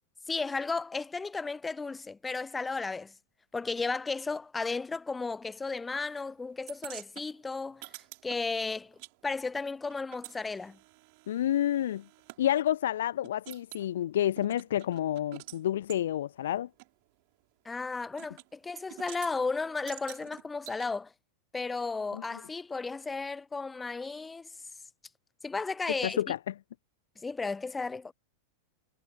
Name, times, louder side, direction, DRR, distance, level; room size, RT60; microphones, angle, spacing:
voice 1, 0.3-3.1 3.5-7.9 8.2-10.8 17.7-21.1 21.5-24.5 25.4-26.2 27.2-28.1, left 4 dB, 10° left, 0.5 m, -34 dB
sound 1, 6.7-9.1 9.4-12.4 12.9-13.0 13.2-13.9 14.4-15.6 15.9-16.0 16.8-16.9 18.2-18.5 18.8-19.3 19.9-20.8, right 31 dB, 45° right, 6.7 m, -48 dB
voice 2, 11.3-12.0 12.4-16.7 22.1-22.2 25.9-26.4, left 11 dB, 60° left, 0.6 m, -29 dB
figure-of-eight pair, 90°, 0 cm